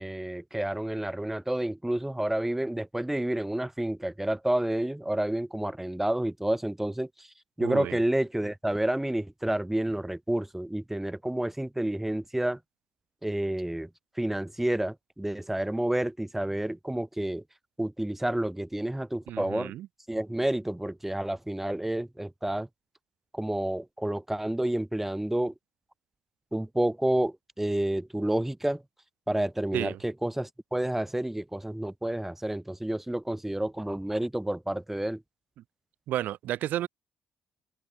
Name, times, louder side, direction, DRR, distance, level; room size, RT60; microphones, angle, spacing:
voice 1, 0.0-7.3 7.6-12.6 13.2-13.9 14.2-17.4 17.8-19.7 20.1-22.7 23.3-25.5 26.5-28.8 29.3-35.2, right 1 dB, 10° right, 0.7 m, -29 dB
voice 2, 7.6-8.0 19.3-19.9 29.7-30.0 36.1-36.9, right 13 dB, 70° right, 0.5 m, -32 dB
open air
hypercardioid pair, 50°, 3 cm